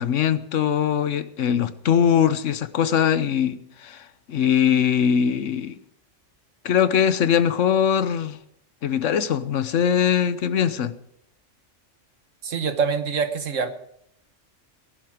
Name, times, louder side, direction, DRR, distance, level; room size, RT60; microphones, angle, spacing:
voice 1, 0.0-5.8 6.6-8.4 8.8-10.9, left 8 dB, 80° left, 1.2 m, -21 dB
voice 2, 12.4-13.7, right 5 dB, 85° right, 1.6 m, -25 dB
18.5 x 11.5 x 4.9 m
omnidirectional pair, 1.3 m